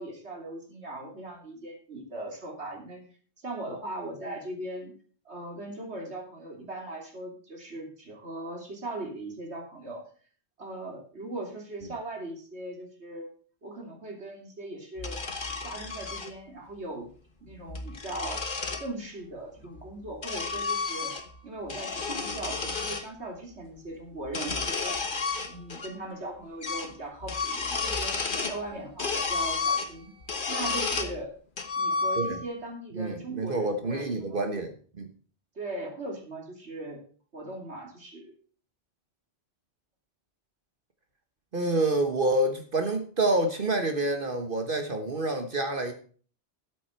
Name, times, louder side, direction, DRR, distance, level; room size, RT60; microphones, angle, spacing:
voice 1, 0.0-3.0 3.4-4.9 5.2-10.1 10.6-13.3 13.6-15.2 15.6-17.1 17.4-18.4 18.8-21.1 21.4-25.0 25.4-28.2 28.5-30.1 30.5-31.3 31.8-34.5 35.5-37.0 37.3-38.3, right 2 dB, 80° right, 1 dB, 3.4 m, -39 dB
sound 1, 15.0-16.3 17.5-18.9 19.8-21.4 21.7-23.1 24.2-25.9 26.2-26.3 26.6-26.9 27.2-28.6 29.0-31.2 31.6-32.5, left 4 dB, 50° left, 1.4 m, -31 dB
voice 2, 32.9-35.1 41.5-45.9, right 2 dB, 55° right, 6 dB, 1.5 m, -28 dB
13.0 x 8.4 x 4.5 m, 0.42 s
omnidirectional pair, 1.1 m